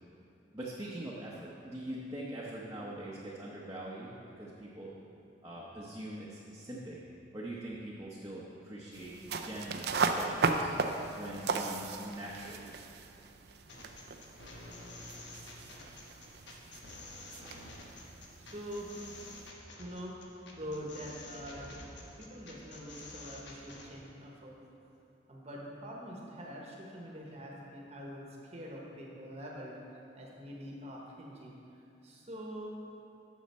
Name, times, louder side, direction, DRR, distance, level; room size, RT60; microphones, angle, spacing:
voice 1, 0.5-4.9 5.4-7.0 7.3-10.7 11.2-12.7, right 1 dB, 20° right, -6 dB, 0.8 m, -43 dB
sound 1, 8.9-19.5, right 4 dB, 60° right, 0.5 m, -37 dB
sound 2, 13.7-23.9, left 2 dB, 80° left, 1.1 m, -49 dB
voice 2, 18.4-19.2 19.8-20.1 20.6-21.7 22.2-24.6 25.3-29.8 30.1-31.5 32.0-32.7, equal, 35° right, -2 dB, 1.1 m, -44 dB
9.4 x 6.4 x 4.2 m, 2.7 s
head